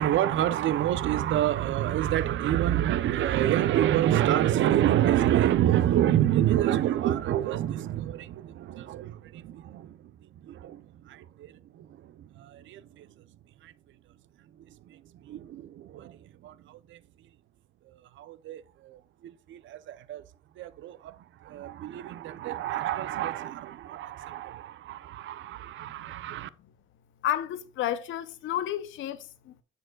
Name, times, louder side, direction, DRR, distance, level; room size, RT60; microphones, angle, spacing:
voice 1, 0.0-10.0 10.4-10.8 11.1-11.9 12.4-13.1 13.6-13.7 15.2-16.2 16.4-17.0 18.2-19.0 19.5-20.2 20.6-21.2 21.4-26.5, right 12 dB, 75° right, 0.6 m, -27 dB
voice 2, 27.2-29.6, left 11 dB, 80° left, 0.6 m, -31 dB
10.0 x 6.9 x 2.2 m
cardioid pair, 90°, 20 cm